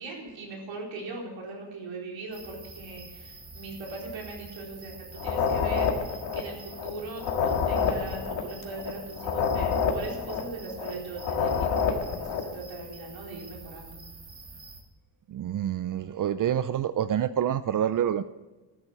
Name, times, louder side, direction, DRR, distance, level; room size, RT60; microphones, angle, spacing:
voice 1, 0.0-14.0, right 2 dB, 90° right, 4.2 m, -40 dB
sound 1, 2.3-14.8, right 3 dB, 30° right, 1.9 m, -47 dB
sound 2, 5.2-12.5, left 6 dB, 80° left, 1.7 m, -28 dB
voice 2, 15.3-18.2, right 10 dB, 50° right, 0.4 m, -27 dB
13.0 x 9.8 x 6.2 m
wide cardioid pair, 175°, 44 cm